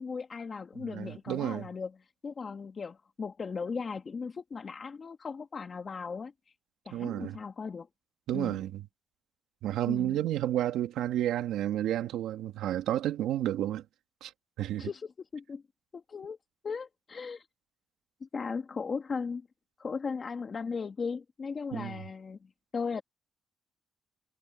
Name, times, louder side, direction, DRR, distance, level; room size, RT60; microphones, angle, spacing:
voice 1, 0.0-1.9 2.2-6.3 6.8-7.9 8.3-8.6 9.9-10.2 14.8-15.6 15.9-16.4 16.6-17.4 18.2-19.5 19.8-23.0, left 5 dB, 40° left, 1.7 m, -37 dB
voice 2, 0.8-1.7 6.9-7.4 8.3-8.8 9.6-13.8 14.2-14.3 14.6-14.9 21.7-22.0, right 12 dB, 85° right, 1.6 m, -31 dB
cardioid pair, 90°, 0 cm